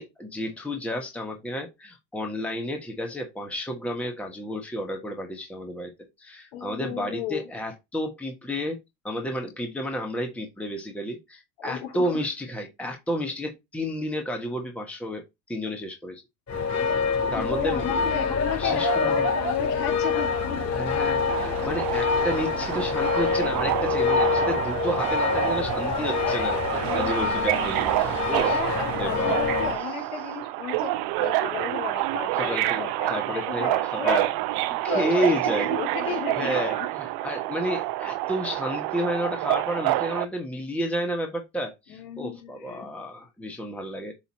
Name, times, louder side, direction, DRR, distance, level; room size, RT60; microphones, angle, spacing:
voice 1, 0.0-5.9 6.2-8.8 9.0-16.2 17.2-17.9 18.6-19.3 20.7-29.4 32.3-34.3 34.7-35.7 36.0-44.1, equal, 5° left, 1.2 m, -31 dB
voice 2, 6.5-7.5 11.6-12.2 17.3-20.7 26.7-27.8 28.5-34.2 34.9-36.9 41.9-42.9, left 8 dB, 60° left, 3.5 m, -34 dB
sound 1, 16.5-29.8, left 5 dB, 30° left, 3.6 m, -26 dB
Subway metro underground, 21.3-40.2, right 17 dB, 50° right, 0.7 m, -28 dB
8.2 x 2.9 x 4.3 m
hypercardioid pair, 95°, 50 cm